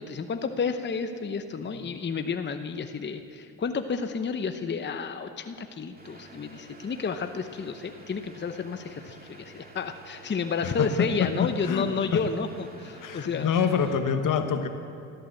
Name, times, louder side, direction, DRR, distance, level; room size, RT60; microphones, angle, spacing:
voice 1, 0.0-13.5, left 5 dB, 30° left, 8 dB, 0.8 m, -31 dB
sound 1, 6.0-13.9, right 2 dB, 25° right, 2.4 m, -49 dB
voice 2, 10.6-12.2 13.0-14.7, left 7 dB, 65° left, 8 dB, 1.3 m, -27 dB
13.5 x 12.5 x 7.7 m, 2.6 s
cardioid pair, 70°, 34 cm